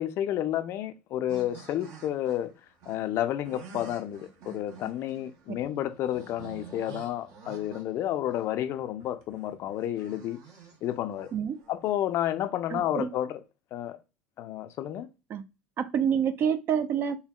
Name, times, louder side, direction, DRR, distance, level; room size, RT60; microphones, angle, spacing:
voice 1, 0.0-2.5 2.9-10.4 10.8-11.3 11.7-13.4 13.7-14.0 14.4-15.1, left 12 dB, 45° left, 0.5 m, -31 dB
sound 1, 1.3-12.1, right 5 dB, 55° right, 1.0 m, -49 dB
voice 2, 12.7-13.1 15.3-15.4 15.8-17.1, right 8 dB, 40° right, 0.5 m, -27 dB
4.4 x 3.4 x 2.3 m
figure-of-eight pair, 70°, 6 cm